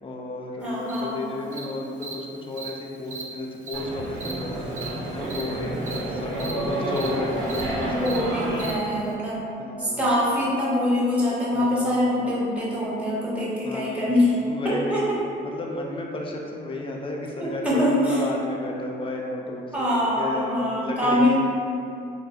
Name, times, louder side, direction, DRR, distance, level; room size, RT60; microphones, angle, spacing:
voice 1, 0.0-8.7 9.6-10.1 11.5-12.0 13.6-14.1 14.4-15.0 15.4-17.8 18.1-20.5 20.8-21.4, left 2 dB, 25° left, 0 dB, 0.4 m, -33 dB
voice 2, 0.6-1.3 7.8-9.4 9.8-14.4 14.7-15.2 17.4-18.2 19.7-21.4, left 1 dB, 5° right, -7 dB, 0.7 m, -24 dB
Cricket, 0.9-1.0 1.5-1.6 2.0-2.1 2.6-2.7 3.1-3.2 3.7-3.8 4.2-4.3 4.8-4.9 5.2-5.4 5.9-6.0 6.3-6.5 6.9-7.1 7.4-7.6 8.0-8.2 8.6-8.7, right 5 dB, 40° right, 0.4 m, -36 dB
sound 1, 3.7-8.7, right 1 dB, 80° right, 0.6 m, -30 dB
3.3 x 2.1 x 2.4 m, 2.6 s
cardioid pair, 90°, 20 cm